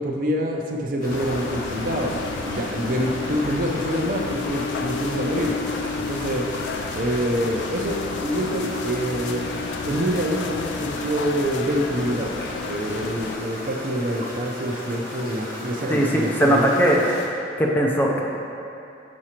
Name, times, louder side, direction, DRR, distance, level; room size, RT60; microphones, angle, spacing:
voice 1, 0.0-2.2 2.4-5.5 6.0-6.4 6.9-9.4 9.8-12.3 12.6-16.7, equal, 50° right, 0 dB, 0.6 m, -26 dB
sound 1, 1.0-17.3, left 1 dB, 55° left, 1.1 m, -36 dB
sound 2, 1.1-13.4, left 5 dB, 75° left, 0.3 m, -31 dB
voice 2, 15.9-17.0 17.6-18.2, right 1 dB, 10° left, -2 dB, 0.5 m, -19 dB
6.2 x 5.9 x 2.9 m, 2.7 s
head